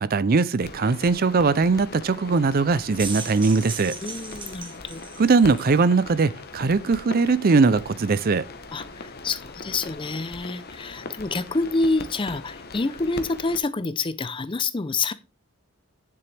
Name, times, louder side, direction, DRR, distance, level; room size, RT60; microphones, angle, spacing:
voice 1, 0.0-3.9 5.2-8.5, right 4 dB, 40° right, 0.4 m, -20 dB
sound 1, 0.6-13.6, left 3 dB, 45° left, 1.0 m, -40 dB
sound 2, 2.7-5.8, right 4 dB, 20° right, 1.6 m, -37 dB
voice 2, 4.0-5.0 8.7-15.1, left 3 dB, 20° left, 0.5 m, -27 dB
9.8 x 7.0 x 3.4 m
head